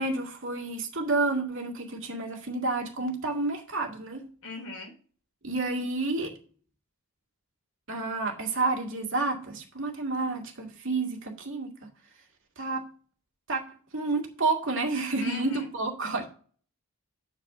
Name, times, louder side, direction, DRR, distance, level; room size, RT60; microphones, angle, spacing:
voice 1, 0.0-4.3 5.4-6.3 7.9-11.9 12.6-12.8 13.5-13.6 13.9-16.2, right 3 dB, 60° right, 2.1 m, -30 dB
voice 2, 4.4-4.9 15.2-15.7, left 2 dB, 80° left, 3.4 m, -38 dB
8.3 x 4.8 x 6.0 m
head